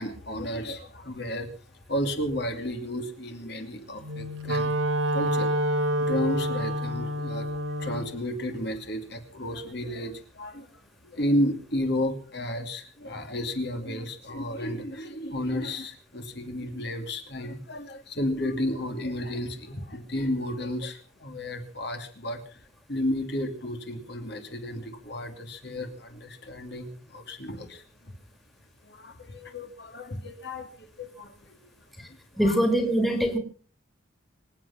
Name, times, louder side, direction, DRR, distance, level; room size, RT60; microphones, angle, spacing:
voice 1, 0.0-1.5 1.9-4.7 5.1-5.5 6.0-10.7 11.0-22.6 22.9-27.8 28.8-31.6 32.0-32.6, left 1 dB, 55° left, 5 dB, 2.7 m, -32 dB
Wind instrument woodwind instrument, 4.0-8.1, equal, 85° right, 2.1 m, -27 dB
voice 2, 32.4-33.4, equal, ahead, 7 dB, 2.3 m, -23 dB
25.5 x 8.7 x 5.8 m, 0.42 s
head